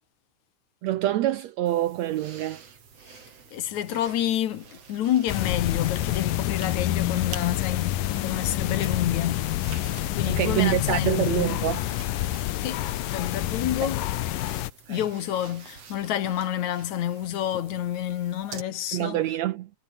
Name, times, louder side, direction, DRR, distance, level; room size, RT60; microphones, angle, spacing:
voice 1, 0.8-2.6 10.3-11.8 13.8-13.9 14.9-15.0 18.9-19.7, right 13 dB, 75° right, 1.7 m, -26 dB
sound 1, 1.7-18.6, right 6 dB, 50° right, 4.1 m, -48 dB
voice 2, 3.5-9.4 10.2-11.5 12.6-12.8 13.1-14.0 14.9-19.2, left 11 dB, 65° left, 2.5 m, -28 dB
sound 2, 5.3-14.7, left 14 dB, 90° left, 2.8 m, -28 dB
omnidirectional pair, 3.8 m